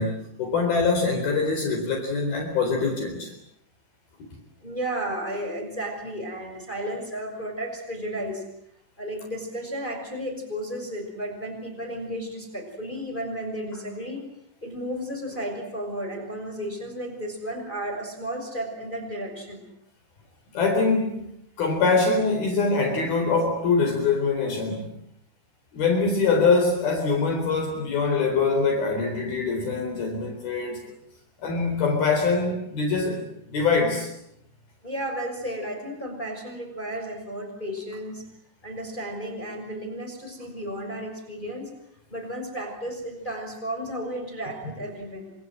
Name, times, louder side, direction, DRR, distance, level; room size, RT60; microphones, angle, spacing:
voice 1, 0.0-3.3 20.5-21.3 21.6-24.9 25.7-30.8 31.4-34.1, left 4 dB, 55° left, 3 dB, 5.7 m, -24 dB
voice 2, 4.6-8.4 9.0-14.2 14.6-19.6 34.8-38.2 38.6-41.7 42.1-45.3, equal, 10° left, 5 dB, 5.8 m, -33 dB
29.0 x 27.0 x 7.7 m, 0.74 s
omnidirectional pair, 5.5 m